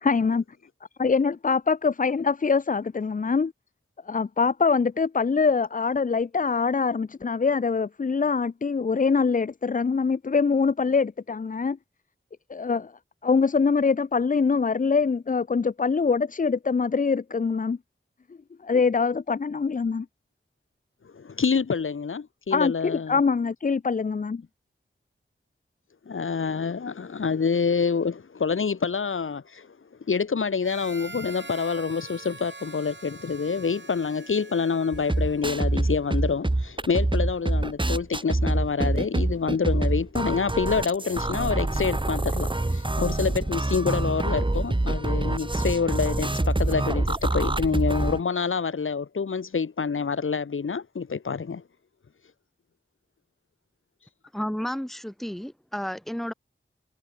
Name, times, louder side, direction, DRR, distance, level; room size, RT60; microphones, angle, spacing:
voice 1, 0.0-0.4 1.0-3.5 4.1-11.8 12.5-12.9 13.2-17.8 18.6-20.1 22.5-24.4, left 5 dB, 40° left, 0.5 m, -24 dB
voice 2, 21.0-23.2 26.1-29.7 30.1-51.6, left 5 dB, 75° left, 0.9 m, -27 dB
Harmonica, 30.6-35.6, right 3 dB, 60° right, 7.0 m, -44 dB
sound 1, 34.9-48.2, right 2 dB, 25° right, 1.3 m, -26 dB
voice 3, 54.3-56.3, equal, ahead, 1.0 m, -32 dB
wide cardioid pair, 45°, 21 cm